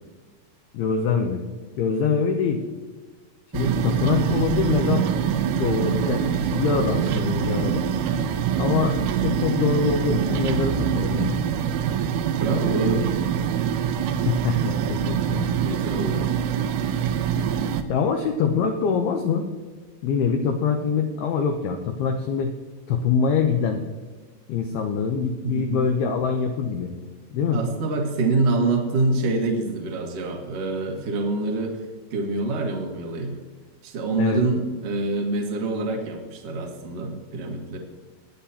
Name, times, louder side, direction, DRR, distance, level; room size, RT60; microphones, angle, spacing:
voice 1, 0.7-1.4 1.8-2.6 3.5-5.1 5.5-7.8 8.6-11.4 14.3-15.5 17.9-19.5 20.0-22.5 22.9-23.8 24.5-26.9 27.3-27.6 34.2-34.4, left 6 dB, 85° left, 4 dB, 2.2 m, -24 dB
sound 1, 3.5-17.8, right 8 dB, 85° right, 3.2 m, -24 dB
voice 2, 12.4-13.1 15.6-16.3 25.4-25.8 27.5-31.8 32.1-33.3 33.8-37.8, right 3 dB, 70° right, 1 dB, 1.4 m, -26 dB
21.5 x 9.1 x 2.8 m, 1.3 s
omnidirectional pair, 5.6 m